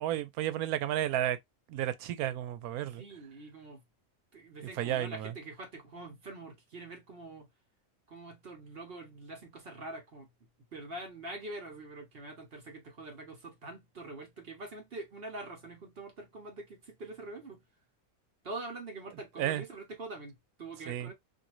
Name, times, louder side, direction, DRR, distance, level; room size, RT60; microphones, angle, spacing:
voice 1, 0.0-1.4 1.7-3.0 4.8-5.3 19.4-19.6 20.9-21.1, right 12 dB, 90° right, 1.1 m, -32 dB
voice 2, 3.0-3.8 4.3-7.5 8.1-10.3 10.7-17.6 18.4-21.1, right 2 dB, 45° right, 1.0 m, -44 dB
2.6 x 2.6 x 2.9 m
omnidirectional pair, 1.5 m